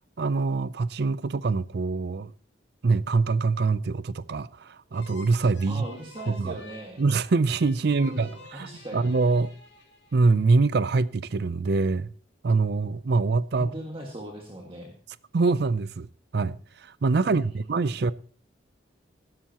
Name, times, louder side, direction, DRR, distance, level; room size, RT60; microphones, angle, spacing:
voice 1, 0.2-2.3 2.8-5.8 6.3-6.5 7.0-9.5 10.1-12.1 12.4-13.7 15.3-16.1 16.3-18.1, right 3 dB, 55° right, 0.5 m, -24 dB
sound 1, 4.9-10.4, left 3 dB, 75° left, 4.6 m, -49 dB
voice 2, 5.7-7.0 7.8-9.1 13.5-14.9 17.2-18.0, right 1 dB, 30° right, 1.8 m, -39 dB
16.0 x 13.0 x 2.9 m
head